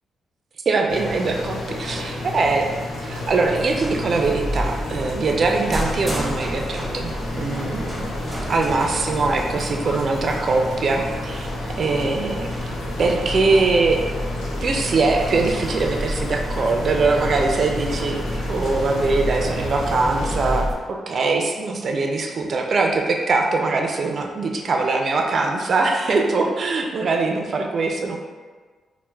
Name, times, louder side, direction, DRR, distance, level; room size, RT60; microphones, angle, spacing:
voice 1, 0.7-2.7 3.0-8.1 8.5-11.5 11.8-14.0 14.6-28.2, right 3 dB, 55° right, 2 dB, 0.3 m, -22 dB
sound 1, 0.9-20.6, left 1 dB, 85° left, 0.6 m, -31 dB
sound 2, 3.1-20.7, equal, 5° right, 0.7 m, -31 dB
4.2 x 2.1 x 2.2 m, 1.4 s
supercardioid pair, 60°, 0 cm